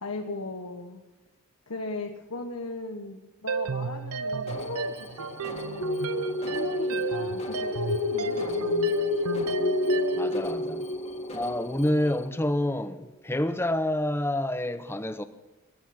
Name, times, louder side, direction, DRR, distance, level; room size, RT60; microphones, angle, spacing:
voice 1, 0.0-1.0 1.7-5.9 6.4-8.9, left 2 dB, 85° left, 1.3 m, -38 dB
sound 1, 3.5-10.3, right 4 dB, 85° right, 0.7 m, -34 dB
Alarm, 4.5-12.3, left 2 dB, 30° left, 1.8 m, -44 dB
sound 2, 5.8-12.3, left 2 dB, 60° left, 1.2 m, -29 dB
voice 2, 10.1-10.9 11.3-15.2, left 1 dB, 10° left, 0.7 m, -28 dB
19.0 x 9.9 x 5.9 m
head